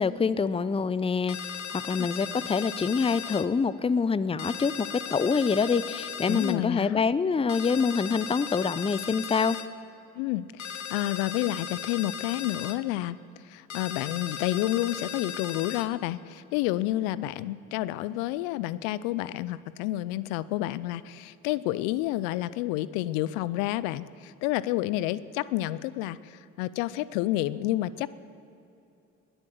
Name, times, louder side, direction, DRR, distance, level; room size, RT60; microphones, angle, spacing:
voice 1, 0.0-9.6, left 5 dB, 15° left, 16 dB, 0.6 m, -26 dB
sound 1, 1.3-3.5 4.4-6.6 7.5-9.7 10.6-12.8 13.7-15.9, left 8 dB, 45° left, 1.0 m, -37 dB
voice 2, 6.3-7.0 10.2-13.2 13.4-28.2, left 15 dB, 80° left, 18 dB, 0.6 m, -30 dB
21.0 x 8.0 x 7.8 m, 2.8 s
hypercardioid pair, 60°, 39 cm